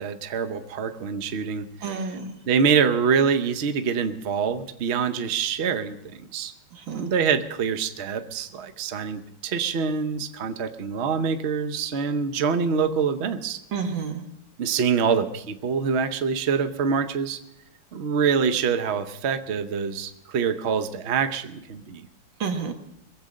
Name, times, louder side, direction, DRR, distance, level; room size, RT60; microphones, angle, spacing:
voice 1, 0.0-1.7 2.5-6.5 6.9-13.6 14.6-17.4 17.9-22.1, right 6 dB, 80° right, 9 dB, 0.5 m, -25 dB
voice 2, 1.8-2.3 6.7-7.1 13.7-14.3 22.4-22.7, right 5 dB, 65° right, 5 dB, 2.0 m, -30 dB
22.0 x 8.1 x 6.3 m, 0.83 s
omnidirectional pair, 2.3 m